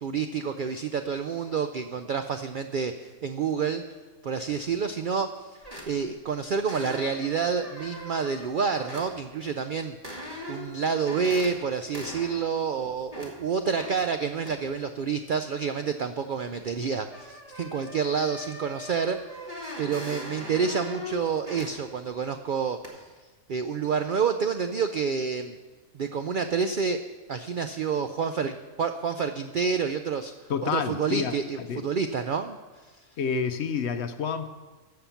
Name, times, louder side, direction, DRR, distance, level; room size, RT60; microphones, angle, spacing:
voice 1, 0.0-3.8 4.2-10.0 10.5-23.1 23.5-25.6 25.9-27.0 27.3-30.3 30.6-32.6 32.9-33.1, right 6 dB, 70° right, 8 dB, 0.4 m, -28 dB
sound 1, 4.5-4.7 5.6-6.2 6.7-9.1 10.0-10.7 11.0-11.5 11.9-12.4 12.8-13.3 13.8-14.0 14.5-14.6 16.6-16.7 17.1-21.7 22.1-22.2 22.8-22.9, left 1 dB, 25° right, 2.2 m, -40 dB
voice 2, 30.5-31.9 33.2-34.5, left 6 dB, 65° left, 9 dB, 0.8 m, -29 dB
14.5 x 5.8 x 7.1 m, 1.3 s
omnidirectional pair, 1.4 m